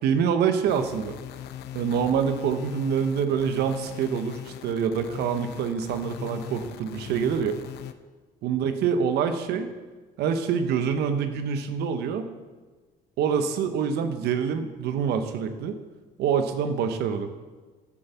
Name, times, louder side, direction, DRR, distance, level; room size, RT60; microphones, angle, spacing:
voice 1, 0.0-1.1 1.7-7.6 8.4-9.7 10.2-12.3 13.2-15.8 16.2-17.3, right 7 dB, 75° right, 8 dB, 0.9 m, -26 dB
sound 1, 0.7-7.9, left 11 dB, 75° left, 0.7 m, -39 dB
9.1 x 7.2 x 6.9 m, 1.3 s
cardioid pair, 110°, 17 cm